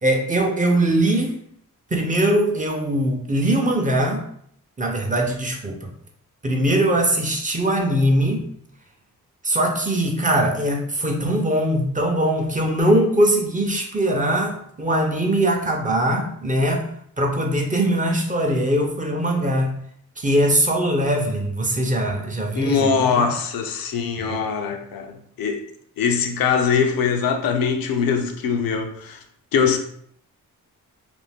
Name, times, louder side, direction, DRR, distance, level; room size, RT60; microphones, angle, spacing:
voice 1, 0.0-1.3 1.9-4.3 4.8-5.9 6.4-8.5 9.4-16.9 17.2-19.7 20.2-23.3 24.2-24.4, right 1 dB, 25° right, 0.6 m, -21 dB
voice 2, 22.6-25.6 26.0-29.2 29.5-29.8, left 6 dB, 85° left, 0.5 m, -22 dB
2.5 x 2.1 x 3.3 m
cardioid pair, 80°, 34 cm